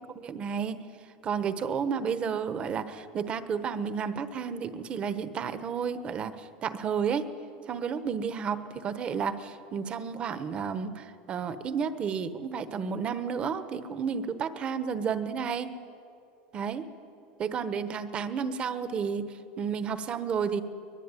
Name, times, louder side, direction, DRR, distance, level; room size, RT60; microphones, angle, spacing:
voice 1, 0.1-0.7 1.2-7.3 7.7-15.7 16.5-16.8 17.4-20.6, right 6 dB, 25° right, 11 dB, 1.1 m, -31 dB
23.0 x 22.0 x 9.8 m, 2.6 s
cardioid pair, 180°, 5 cm